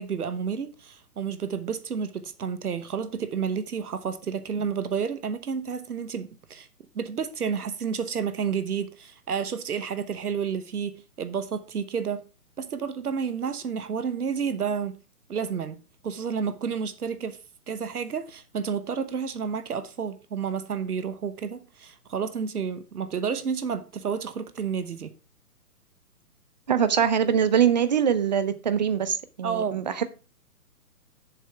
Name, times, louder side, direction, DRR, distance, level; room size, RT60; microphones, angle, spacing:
voice 1, 0.0-6.7 6.9-12.3 12.6-15.0 15.3-15.8 16.0-17.4 17.7-25.1 29.4-29.8, right 6 dB, 75° right, 1.1 m, -30 dB
voice 2, 26.7-30.0, right 8 dB, 30° right, 0.6 m, -23 dB
7.1 x 5.5 x 5.7 m
figure-of-eight pair, 140°, 46 cm